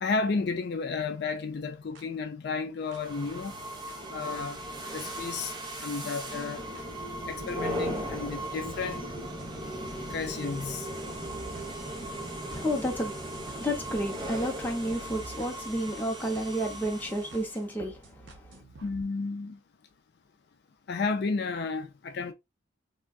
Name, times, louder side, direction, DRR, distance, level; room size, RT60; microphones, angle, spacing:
voice 1, 0.0-3.5 4.1-4.6 4.9-5.5 5.8-6.6 7.3-9.0 10.1-10.9 18.8-19.6 20.9-22.3, left 4 dB, 55° left, 0.4 m, -32 dB
sound 1, 2.0-2.1 2.9-3.0 3.9-4.0 4.8-4.9 5.8-5.9 6.8-6.9 7.2-19.0, right 3 dB, 80° right, 0.7 m, -51 dB
sound 2, 2.9-17.6, right 1 dB, 25° right, 0.7 m, -37 dB
voice 2, 12.2-13.2 13.6-18.6, equal, 10° left, 0.7 m, -31 dB
3.5 x 2.3 x 2.3 m
head